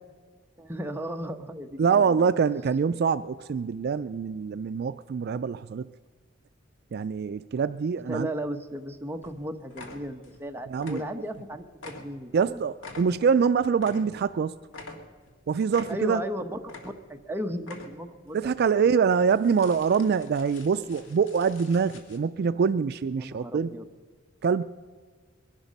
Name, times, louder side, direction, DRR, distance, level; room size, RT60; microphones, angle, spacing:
voice 1, 0.6-2.3 8.1-12.6 15.9-16.6 16.8-18.7 23.1-23.9, equal, 10° right, 5 dB, 1.0 m, -35 dB
voice 2, 1.8-5.8 6.9-8.3 10.7-11.0 12.3-14.5 15.5-16.2 18.3-23.7 24.4-24.6, right 6 dB, 55° right, 13 dB, 0.3 m, -24 dB
sound 1, 8.8-8.9 9.2-9.4 9.7-10.4 10.7-11.5 11.7-14.4 14.7-15.4 15.7-16.3 16.6-17.2 17.6-18.2 18.5-18.7 19.2-22.2, left 2 dB, 70° left, 2.1 m, -46 dB
22.5 x 11.5 x 5.3 m, 1.5 s
head